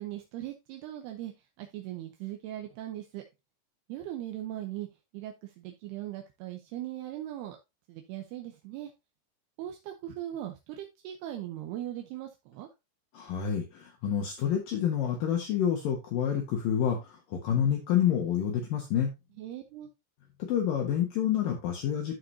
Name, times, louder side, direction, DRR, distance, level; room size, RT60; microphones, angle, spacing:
voice 1, 0.0-1.3 1.6-3.2 3.9-4.9 5.1-7.6 7.9-8.9 9.6-12.7 19.4-19.9, right 13 dB, 80° right, 3 dB, 2.8 m, -39 dB
voice 2, 13.1-19.1 20.4-22.1, left 9 dB, 65° left, 1 dB, 2.7 m, -28 dB
14.0 x 4.8 x 2.7 m, 0.24 s
omnidirectional pair, 4.8 m